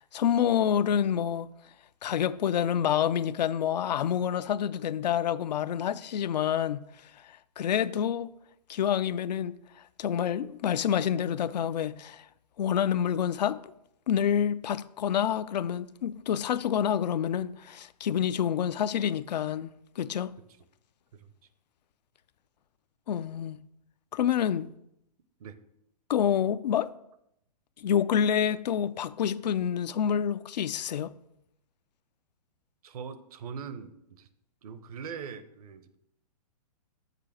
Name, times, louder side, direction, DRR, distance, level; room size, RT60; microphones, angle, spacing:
voice 1, 0.0-1.5 2.0-6.8 7.3-8.3 8.7-9.6 10.0-12.2 12.6-13.6 14.1-19.7 20.0-20.3 23.1-23.6 24.1-24.7 26.1-26.9 27.8-31.1, left 9 dB, 80° left, 0.4 m, -27 dB
voice 2, 32.8-34.3 34.6-36.0, right 6 dB, 60° right, 0.8 m, -41 dB
6.7 x 5.1 x 6.1 m
hypercardioid pair, 135°, 21 cm